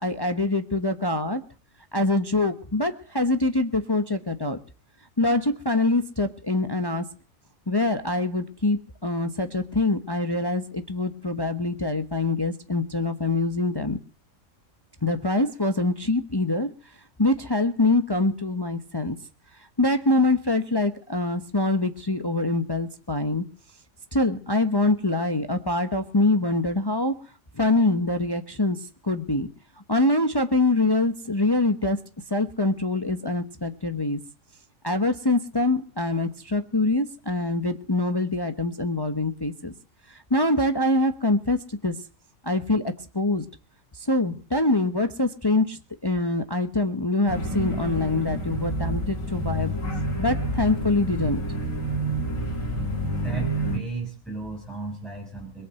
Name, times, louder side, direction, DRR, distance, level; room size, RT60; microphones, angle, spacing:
voice 1, 0.0-1.4 1.9-4.6 5.2-7.0 7.7-14.0 15.0-16.7 17.2-19.2 19.5-23.4 24.1-27.1 27.5-29.5 29.9-32.0 32.3-34.2 34.8-39.7 40.1-42.0 42.4-43.5 43.9-49.8 50.2-51.4, left 2 dB, 20° left, 7 dB, 1.1 m, -24 dB
sound 1, 47.3-53.8, right 1 dB, 75° left, 3.8 m, -28 dB
voice 2, 53.2-55.7, right 3 dB, ahead, 0 dB, 5.5 m, -34 dB
22.0 x 8.6 x 7.7 m, 0.38 s
omnidirectional pair, 1.4 m